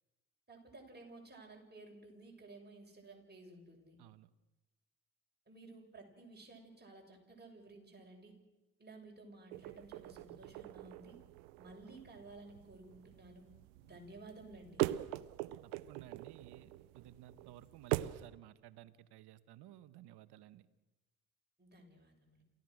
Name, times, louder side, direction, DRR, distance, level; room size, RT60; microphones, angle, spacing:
voice 1, 0.5-4.0 5.5-8.3 8.8-11.2 11.6-13.5 13.8-14.8 21.6-22.4, right 2 dB, 25° right, 0 dB, 7.0 m, -55 dB
voice 2, 4.0-4.3 15.6-20.7, right 13 dB, 65° right, 15 dB, 1.2 m, -56 dB
sound 1, 9.5-18.3, right 17 dB, 85° right, 0.7 m, -42 dB
28.0 x 15.5 x 6.4 m, 1.1 s
hypercardioid pair, 50°, 42 cm